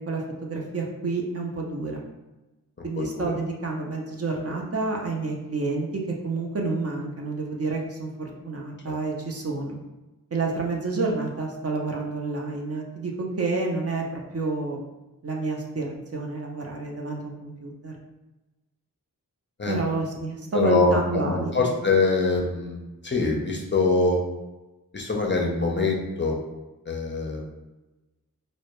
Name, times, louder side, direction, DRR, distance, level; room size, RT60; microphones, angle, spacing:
voice 1, 0.1-2.0 2.8-5.9 6.2-9.8 10.3-14.8 15.2-17.9 19.7-21.7, right 3 dB, 40° right, 0 dB, 0.5 m, -29 dB
voice 2, 3.0-3.3 19.6-19.8 20.5-24.2 24.9-26.4 26.9-27.5, left 3 dB, 35° left, 0 dB, 0.4 m, -24 dB
2.1 x 2.1 x 2.9 m, 1.1 s
cardioid pair, 45°, 36 cm